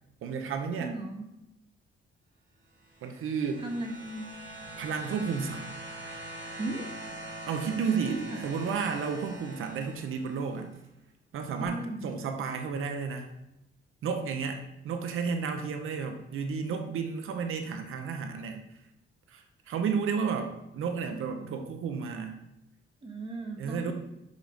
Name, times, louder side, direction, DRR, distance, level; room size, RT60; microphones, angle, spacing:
voice 1, 0.2-1.0 3.0-3.7 4.8-5.7 7.5-10.7 11.3-13.3 14.0-18.6 19.3-22.4 23.6-23.9, right 5 dB, 90° right, 6 dB, 0.7 m, -32 dB
voice 2, 0.8-1.2 3.6-4.3 6.6-6.8 8.1-8.4 11.6-12.1 23.0-23.9, right 2 dB, 25° right, 1 dB, 1.2 m, -36 dB
sound 1, 2.8-10.6 11.6-11.7, right 1 dB, 65° right, 2.1 m, -43 dB
6.4 x 5.3 x 3.8 m, 0.90 s
wide cardioid pair, 140°, 21 cm